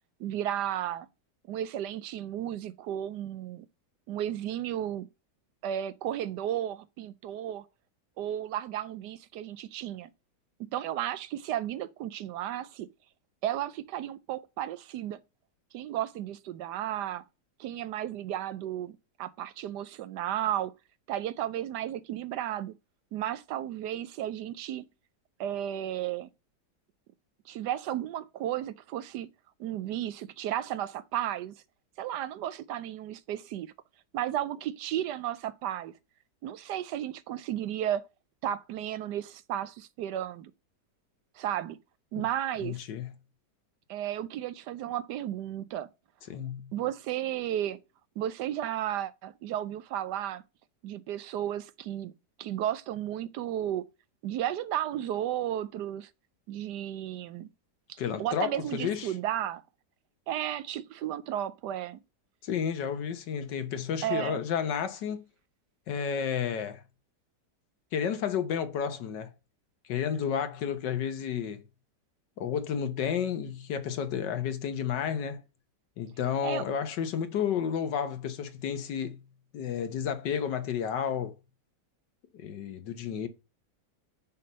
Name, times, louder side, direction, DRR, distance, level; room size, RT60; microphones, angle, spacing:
voice 1, 0.2-1.1 1.5-3.7 4.1-5.1 5.6-7.6 8.2-10.1 10.7-12.9 13.4-15.2 15.7-17.2 17.6-20.7 21.1-22.7 23.1-24.9 25.4-26.3 27.5-29.3 29.6-31.5 32.0-33.7 34.1-35.9 36.4-38.0 38.4-40.5 41.4-41.8 42.1-42.8 43.9-45.9 46.7-47.8 48.2-50.4 50.8-52.1 52.4-53.8 54.2-56.1 56.5-57.5 57.9-59.6 60.3-62.0 64.0-64.4 76.4-76.6, right 11 dB, 75° right, 1.2 m, -33 dB
voice 2, 42.6-43.1 46.3-46.7 58.0-59.1 62.4-65.2 65.9-66.8 67.9-69.3 69.9-71.6 72.4-75.4 76.0-79.2 79.5-81.4 82.3-83.3, left 8 dB, 80° left, 1.7 m, -31 dB
6.5 x 5.6 x 5.3 m
omnidirectional pair, 1.9 m